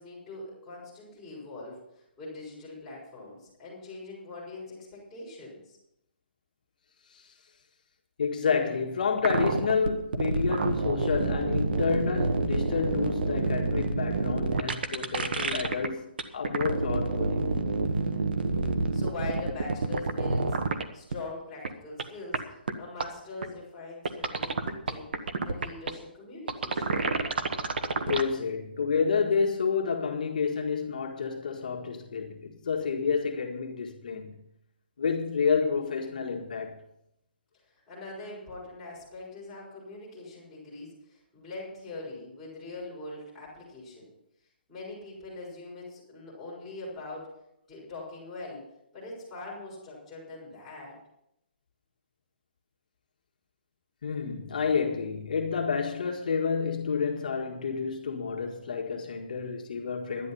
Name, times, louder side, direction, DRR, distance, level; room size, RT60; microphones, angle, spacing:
voice 1, 0.0-5.8 18.9-20.6 20.9-27.0 37.7-44.1 44.7-47.3 47.7-48.6 48.9-50.9, left 2 dB, ahead, 4.4 m, -42 dB
voice 2, 8.2-17.5 28.1-34.4 35.0-36.8 54.0-60.3, left 5 dB, 50° left, 1.7 m, -29 dB
sound 1, 9.2-15.9 16.2-20.8 21.1-21.2 21.6-21.7 22.0-22.1 22.3-22.4 22.7-22.8 23.0-23.1 23.4-23.5 24.1-25.9 26.5-28.2, right 3 dB, 65° right, 1.3 m, -28 dB
12.0 x 11.0 x 5.6 m
hypercardioid pair, 180°, 6 cm